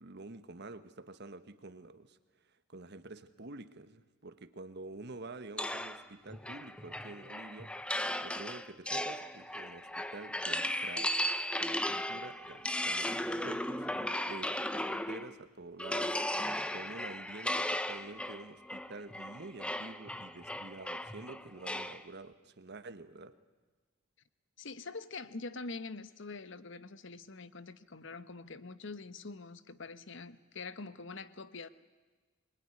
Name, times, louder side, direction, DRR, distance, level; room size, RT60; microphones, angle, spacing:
voice 1, 0.0-2.2 2.7-23.3, right 2 dB, 55° right, 11 dB, 1.3 m, -48 dB
sound 1, 5.6-15.4 15.8-22.0, left 1 dB, 5° left, 0.7 m, -36 dB
voice 2, 24.6-31.7, left 3 dB, 65° left, 13 dB, 1.1 m, -45 dB
25.0 x 21.5 x 9.8 m, 1.3 s
head